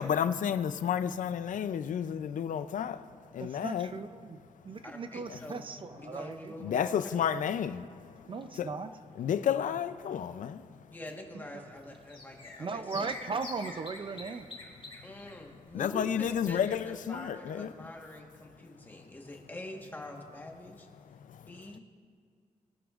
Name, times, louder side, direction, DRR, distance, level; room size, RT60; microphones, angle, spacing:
voice 1, 0.0-3.9 5.3-5.4 6.6-8.8 9.2-10.9 15.7-17.7 21.0-21.6, left 8 dB, 90° left, 0.4 m, -32 dB
voice 2, 3.4-4.4 4.6-6.7 8.3-8.9 11.3-11.6 12.6-14.5, right 4 dB, 40° right, 0.4 m, -38 dB
voice 3, 4.8-5.6 5.9-7.0 10.9-13.1 15.0-16.1 16.5-20.9 21.5-21.8, left 1 dB, 15° left, 1.3 m, -45 dB
sound 1, 11.9-17.1 17.4-17.5 17.7-17.8, left 3 dB, 40° left, 1.9 m, -48 dB
20.5 x 11.0 x 2.4 m
wide cardioid pair, 170°, 13 cm